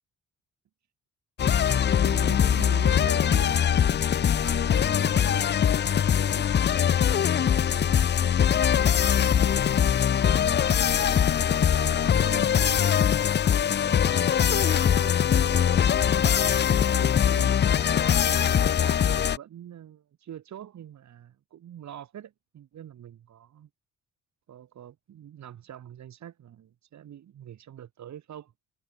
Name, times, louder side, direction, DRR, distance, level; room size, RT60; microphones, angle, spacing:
sound 1, 1.4-19.4, left 9 dB, 35° left, 0.5 m, -22 dB
voice 1, 2.0-6.5 7.4-10.5 11.1-12.9 13.8-17.6 18.5-23.7 24.5-28.5, right 10 dB, 65° right, 5.2 m, -45 dB
cardioid pair, 90°, 30 cm